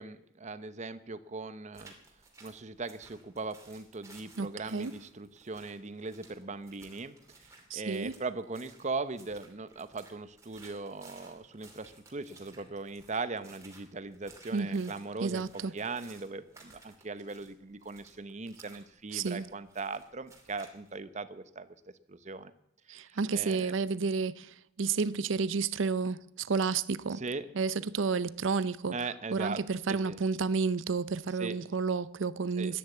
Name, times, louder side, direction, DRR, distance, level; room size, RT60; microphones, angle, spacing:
voice 1, 0.0-1.9 2.4-7.2 7.7-15.5 15.7-21.7 22.1-22.5 22.9-23.7 27.1-27.5 28.9-29.6 29.9-30.2 31.4-31.6 32.6-32.7, right 3 dB, 35° right, 0.8 m, -39 dB
sound 1, 1.7-20.9, right 3 dB, 15° right, 2.8 m, -57 dB
voice 2, 4.4-4.9 7.7-8.1 14.5-14.9 15.2-15.7 19.1-19.4 22.9-27.2 27.5-29.0 29.3-32.8, right 4 dB, 70° right, 0.6 m, -31 dB
13.0 x 10.0 x 8.4 m
head